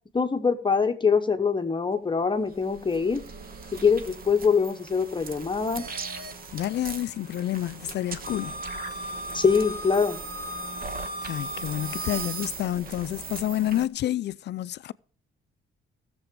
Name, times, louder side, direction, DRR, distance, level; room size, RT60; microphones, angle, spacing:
voice 1, 0.1-3.2 3.7-5.9 9.3-10.2, left 5 dB, 25° left, 1.0 m, -24 dB
sound 1, 2.2-13.9, right 2 dB, 50° right, 1.3 m, -37 dB
voice 2, 6.5-8.6 11.2-14.9, left 13 dB, 60° left, 0.5 m, -29 dB
14.5 x 7.0 x 5.1 m
cardioid pair, 90°, 20 cm